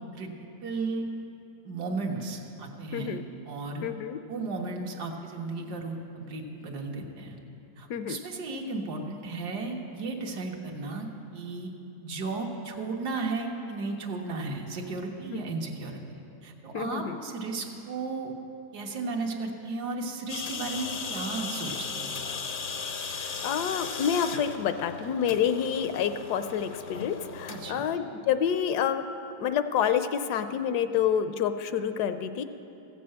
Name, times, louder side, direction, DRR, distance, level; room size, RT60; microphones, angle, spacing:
voice 1, 0.6-1.1 1.6-3.9 4.3-7.4 7.8-11.7 12.0-16.0 16.4-18.3 18.7-22.2 27.5-27.8, right 3 dB, 75° right, 1 dB, 1.7 m, -34 dB
voice 2, 3.8-4.2 7.9-8.2 15.3-15.4 16.7-17.2 23.0-29.0 29.4-32.4, left 8 dB, 75° left, 10 dB, 1.1 m, -28 dB
sound 1, 20.3-27.7, left 5 dB, 55° left, 0.5 m, -36 dB
15.0 x 6.8 x 7.6 m, 2.8 s
omnidirectional pair, 1.8 m